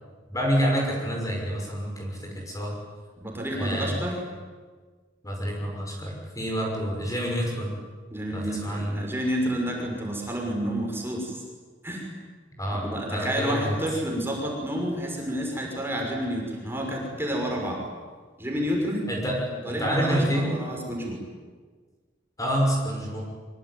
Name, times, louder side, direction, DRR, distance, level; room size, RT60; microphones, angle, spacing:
voice 1, 0.3-2.8 3.5-4.0 5.2-7.8 8.3-9.0 12.6-13.7 19.1-20.5 22.4-23.3, equal, 15° left, 0 dB, 6.0 m, -28 dB
voice 2, 3.2-4.2 8.1-11.4 11.8-12.1 12.9-17.8 18.4-19.1 19.6-21.2, equal, 10° right, 0 dB, 6.4 m, -29 dB
24.5 x 24.0 x 9.5 m, 1.4 s
head